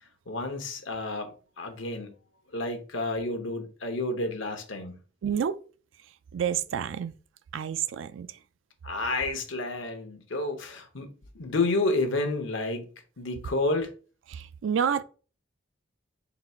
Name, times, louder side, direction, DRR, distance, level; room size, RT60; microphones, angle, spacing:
voice 1, 0.3-2.1 2.5-5.0 8.8-11.1 11.3-12.9 13.2-13.9, left 2 dB, 85° left, 0.9 m, -30 dB
voice 2, 5.2-5.6 6.3-7.1 7.5-8.3 14.3-15.0, right 8 dB, 80° right, 0.3 m, -28 dB
4.0 x 2.4 x 4.3 m
head